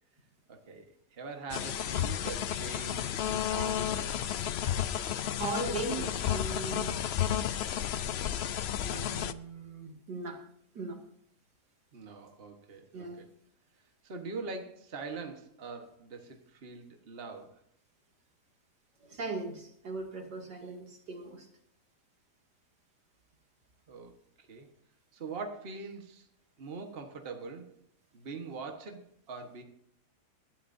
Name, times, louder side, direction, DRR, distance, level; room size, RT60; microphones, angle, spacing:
voice 1, 0.5-4.2 11.9-13.3 14.0-17.5 23.9-24.1 24.4-24.7 25.1-26.3 26.6-27.7 28.1-29.6, right 4 dB, 35° right, 4 dB, 1.5 m, -43 dB
sound 1, 1.5-9.3, left 10 dB, 70° left, 0.6 m, -32 dB
voice 2, 5.4-7.0 8.8-10.4 10.7-11.0 12.9-13.2 19.0-21.5, right 3 dB, 90° right, 1 dB, 3.0 m, -38 dB
20.0 x 12.5 x 2.7 m, 0.71 s
omnidirectional pair, 1.8 m